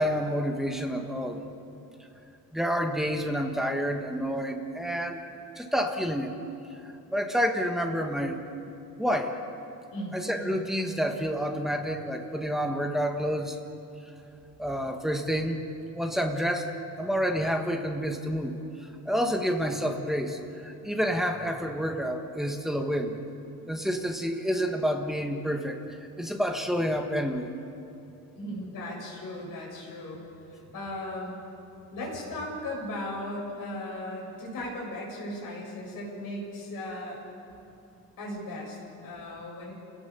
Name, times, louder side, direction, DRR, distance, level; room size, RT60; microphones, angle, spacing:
voice 1, 0.0-1.5 2.5-5.2 5.6-6.3 7.1-8.4 9.0-9.4 10.1-13.6 14.6-15.6 15.9-16.7 17.0-23.2 23.7-25.8 26.2-27.5, equal, ahead, 3 dB, 1.4 m, -29 dB
voice 2, 9.9-10.2 28.4-31.4 31.9-37.2 38.2-39.7, left 1 dB, 60° left, -3 dB, 7.7 m, -37 dB
29.0 x 17.5 x 6.9 m, 2.7 s
cardioid pair, 175°, 37 cm